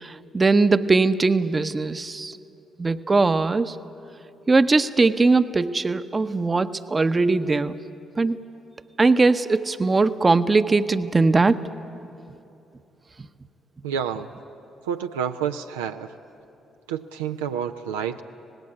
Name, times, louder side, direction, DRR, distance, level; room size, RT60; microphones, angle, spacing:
voice 1, 0.0-2.4 2.8-3.7 4.5-7.8 8.2-8.4 9.0-11.5, right 3 dB, 30° right, 11 dB, 0.8 m, -20 dB
voice 2, 13.8-14.3 14.8-16.2 16.9-18.2, right 8 dB, 80° right, 6 dB, 0.5 m, -29 dB
25.5 x 19.0 x 8.5 m, 2.8 s
hypercardioid pair, 40°, 0 cm